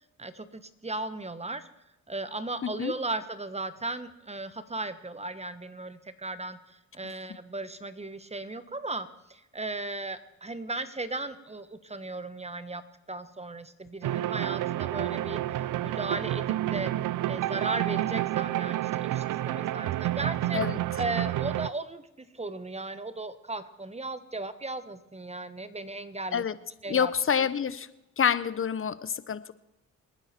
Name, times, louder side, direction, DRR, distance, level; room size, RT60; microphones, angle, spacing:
voice 1, 0.2-1.7 2.1-12.8 13.1-16.9 17.3-20.6 21.0-26.4 26.8-27.1 27.4-27.5, right 2 dB, 20° right, 12 dB, 1.2 m, -36 dB
voice 2, 2.6-2.9 20.5-20.8 26.3-26.5 26.9-27.9 28.2-29.5, left 7 dB, 40° left, 16 dB, 0.9 m, -27 dB
sound 1, 14.0-21.7, right 14 dB, 70° right, 0.5 m, -29 dB
26.5 x 9.8 x 4.4 m, 0.92 s
cardioid pair, 70°, 33 cm